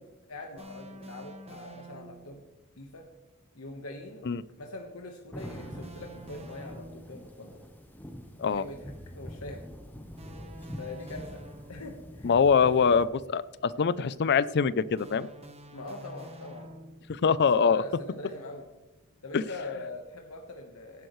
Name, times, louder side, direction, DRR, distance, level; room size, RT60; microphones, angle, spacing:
voice 1, 0.0-2.4 2.8-3.0 3.5-4.3 4.6-7.6 8.4-9.6 10.8-11.4 11.7-12.3 12.6-13.0 15.7-16.7 17.5-18.7 19.2-21.1, left 2 dB, 90° left, 2 dB, 1.3 m, -42 dB
sound 1, 0.6-2.4 5.4-7.2 10.2-12.1 15.0-17.2, right 1 dB, 30° right, 1.1 m, -48 dB
sound 2, 5.3-13.1, equal, 10° left, 0.9 m, -44 dB
voice 2, 12.2-15.3 17.1-17.8 19.3-19.4, left 6 dB, 50° left, 17 dB, 0.5 m, -24 dB
16.5 x 11.0 x 3.2 m, 1.0 s
head